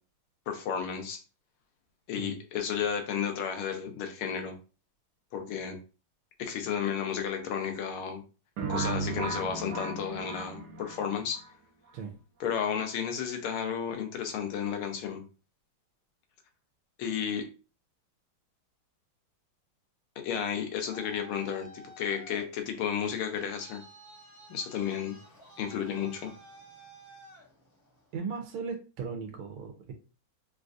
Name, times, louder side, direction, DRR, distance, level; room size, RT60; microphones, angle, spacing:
voice 1, 0.5-1.2 2.1-4.5 5.3-5.8 6.4-8.2 8.7-11.4 12.4-15.2 17.0-17.4 20.2-23.8 24.5-25.2 25.6-26.3, left 8 dB, 85° left, 5 dB, 1.6 m, -32 dB
sound 1, 8.6-11.4, right 4 dB, 65° right, 1.1 m, -35 dB
Traffic noise roadway noise, 20.5-28.2, right 1 dB, 40° left, 0.5 m, -52 dB
voice 2, 28.1-29.9, right 5 dB, 85° right, 4 dB, 1.5 m, -37 dB
3.9 x 2.4 x 2.5 m, 0.33 s
omnidirectional pair, 2.3 m